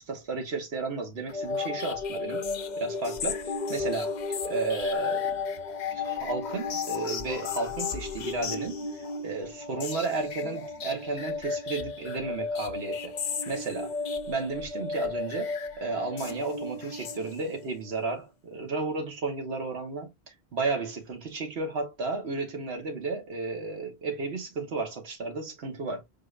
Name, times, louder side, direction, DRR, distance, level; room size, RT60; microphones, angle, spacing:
voice 1, 0.0-2.4 2.8-5.4 5.9-13.1 13.5-13.9 14.3-26.0, right 3 dB, 85° right, 1.4 m, -33 dB
sound 1, 1.3-17.7, left 4 dB, 50° left, 0.6 m, -33 dB
4.5 x 3.2 x 2.4 m
omnidirectional pair, 1.1 m